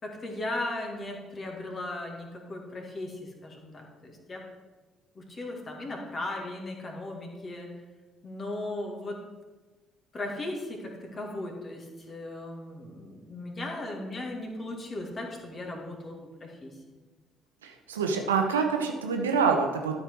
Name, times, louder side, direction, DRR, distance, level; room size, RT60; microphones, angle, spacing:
voice 1, 0.0-4.4 5.2-7.7 8.2-9.2 10.1-16.8, left 2 dB, 35° left, 0 dB, 2.2 m, -37 dB
voice 2, 17.6-19.9, right 5 dB, 80° right, 4 dB, 0.9 m, -26 dB
12.5 x 5.6 x 4.7 m, 1.3 s
figure-of-eight pair, 50°, 0 cm